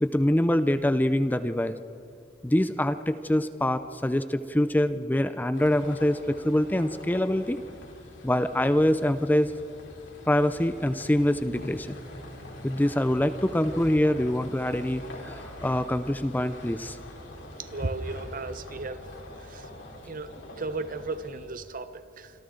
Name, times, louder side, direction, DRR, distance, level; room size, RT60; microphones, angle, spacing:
voice 1, 0.0-1.8 2.4-7.6 8.2-9.6 10.3-11.9 12.6-17.0, left 1 dB, 10° left, 11 dB, 0.5 m, -25 dB
sound 1, 5.5-21.5, left 1 dB, 75° left, 4.5 m, -44 dB
voice 2, 17.6-19.1 19.5-19.7 20.1-22.3, right 3 dB, 45° right, 12 dB, 1.0 m, -35 dB
26.0 x 26.0 x 3.8 m, 2.7 s
head